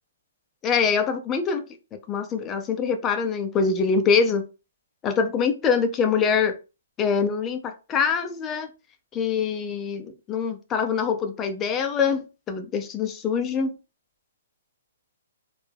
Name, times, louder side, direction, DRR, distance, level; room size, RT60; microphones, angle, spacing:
voice 1, 0.6-1.6 2.1-4.4 5.0-6.5 7.0-8.7 9.1-13.8, left 6 dB, 20° left, 6 dB, 0.4 m, -24 dB
2.2 x 2.1 x 3.2 m, 0.30 s
hypercardioid pair, 140°, 0 cm